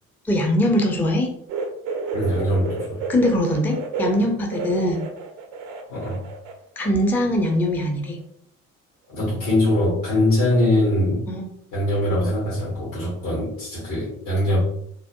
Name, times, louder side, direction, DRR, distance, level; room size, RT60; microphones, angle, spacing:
voice 1, 0.3-1.3 3.1-5.0 6.8-8.2 11.3-11.4, left 1 dB, 5° left, 2 dB, 0.4 m, -21 dB
sound 1, 1.5-6.6 6.8-7.8 8.1-8.2 9.2-9.3, right 4 dB, 65° right, 0.6 m, -31 dB
voice 2, 2.1-3.0 5.9-6.2 9.1-11.3 11.7-14.6, left 1 dB, 70° left, -8 dB, 1.4 m, -22 dB
3.3 x 2.1 x 2.8 m, 0.69 s
figure-of-eight pair, 45°, 41 cm